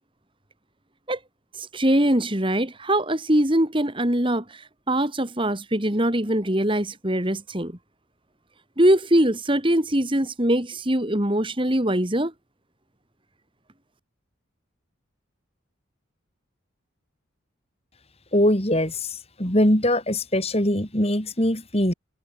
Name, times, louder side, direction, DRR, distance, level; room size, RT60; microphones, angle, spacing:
voice 1, 1.6-7.7 8.8-12.3, right 1 dB, 25° right, 2.5 m, -22 dB
voice 2, 18.3-21.9, left 1 dB, 30° left, 4.3 m, -22 dB
head